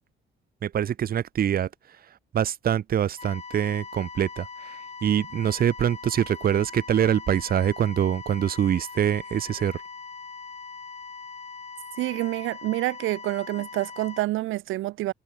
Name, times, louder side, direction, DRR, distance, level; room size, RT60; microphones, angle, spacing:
voice 1, 0.6-1.7 2.3-4.5 5.0-9.7, right 9 dB, 50° right, 0.7 m, -24 dB
sound 1, 3.2-14.2, left 5 dB, 35° left, 4.3 m, -41 dB
voice 2, 12.0-15.1, right 17 dB, 85° right, 0.5 m, -27 dB
cardioid pair, 90°, 20 cm